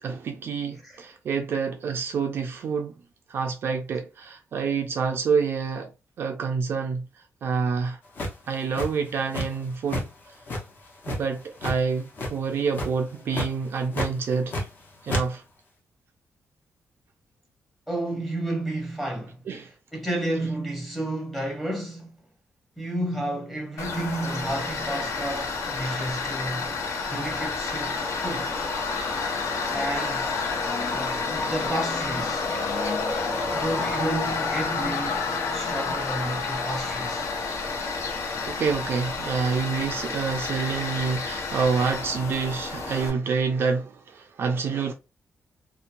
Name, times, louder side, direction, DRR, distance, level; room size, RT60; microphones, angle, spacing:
voice 1, 0.0-3.0 3.3-5.9 6.2-7.1 7.4-8.0 8.5-10.1 11.1-14.5 15.0-15.4 19.5-19.7 38.5-44.9, right 5 dB, 50° right, 0.4 m, -27 dB
sound 1, 8.2-9.6 9.9-10.1 10.5-11.8 12.1-12.5 12.7-13.0 13.3-13.5 13.9-14.8 15.1-15.2, left 1 dB, 40° left, 0.7 m, -30 dB
voice 2, 17.9-19.5 19.9-22.1 22.8-26.7 27.1-28.6 29.7-30.3 30.9-32.5 33.5-37.3, right 1 dB, ahead, 0.8 m, -31 dB
Tools, 23.8-43.1, left 4 dB, 80° left, 0.7 m, -29 dB
2.8 x 2.1 x 2.5 m
wide cardioid pair, 180°, 5 cm